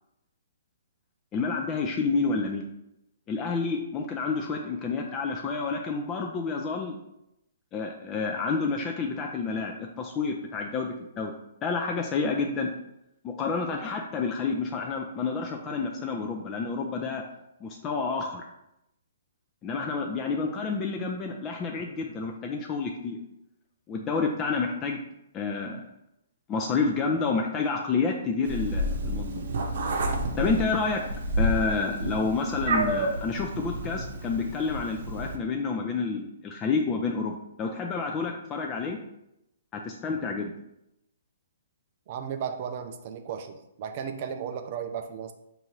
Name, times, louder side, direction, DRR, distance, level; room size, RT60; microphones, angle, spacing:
voice 1, 1.3-2.7 3.3-7.0 7.7-11.3 11.6-12.7 13.2-17.2 17.6-18.5 19.6-23.2 23.9-25.0 25.3-25.9 26.5-29.5 30.4-31.1 31.4-39.0 39.7-40.5, left 4 dB, 25° left, 2 dB, 0.4 m, -29 dB
Meow, 28.4-35.3, right 1 dB, 65° right, 0.8 m, -30 dB
voice 2, 42.1-45.3, right 7 dB, 45° right, 6 dB, 0.4 m, -35 dB
5.5 x 2.7 x 3.1 m, 0.84 s
hypercardioid pair, 130°, 0 cm